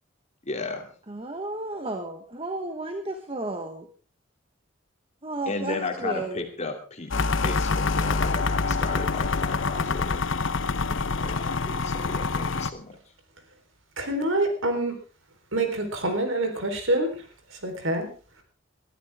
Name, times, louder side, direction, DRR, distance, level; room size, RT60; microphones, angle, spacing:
voice 1, 0.4-0.9 5.5-10.2 10.8-13.0, left 3 dB, 35° left, 4 dB, 2.8 m, -35 dB
voice 2, 1.1-3.9 5.2-6.4, right 2 dB, 30° right, 6 dB, 1.4 m, -33 dB
sound 1, 7.1-12.7, left 4 dB, 70° left, 0.9 m, -26 dB
voice 3, 14.0-15.0 15.5-18.1, right 1 dB, 75° right, 5 dB, 4.1 m, -26 dB
21.0 x 13.5 x 3.6 m, 0.38 s
head